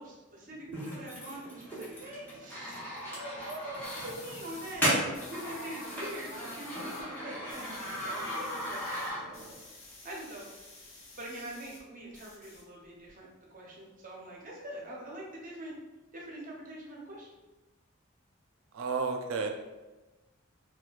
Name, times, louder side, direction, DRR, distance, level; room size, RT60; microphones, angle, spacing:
voice 1, 0.0-4.9 5.2-9.4 10.0-10.5 11.1-15.8 16.1-17.3, right 1 dB, 40° right, -3 dB, 0.7 m, -44 dB
sound 1, 0.7-9.6, equal, 10° left, 0.9 m, -36 dB
sound 2, 3.8-4.8 5.1-7.0 7.3-11.8 12.1-13.1, left 3 dB, 80° left, 0.9 m, -51 dB
voice 2, 18.7-19.5, right 4 dB, 85° right, 4 dB, 0.4 m, -31 dB
4.3 x 2.2 x 2.3 m, 1.1 s
head